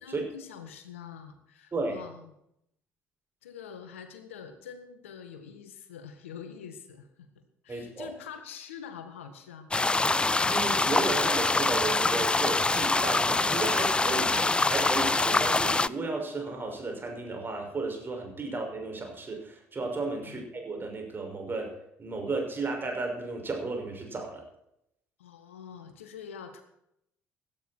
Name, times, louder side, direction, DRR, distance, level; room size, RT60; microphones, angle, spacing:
voice 1, 0.0-2.3 3.4-9.7 15.5-15.6 20.2-20.4 25.2-26.6, left 7 dB, 80° left, 8 dB, 1.8 m, -45 dB
voice 2, 7.7-8.1 10.5-21.7 22.0-24.4, right 3 dB, 30° right, 3 dB, 6.1 m, -34 dB
sound 1, 9.7-15.9, left 3 dB, 15° left, 0.5 m, -25 dB
17.0 x 12.0 x 4.5 m, 0.77 s
figure-of-eight pair, 50°, 7 cm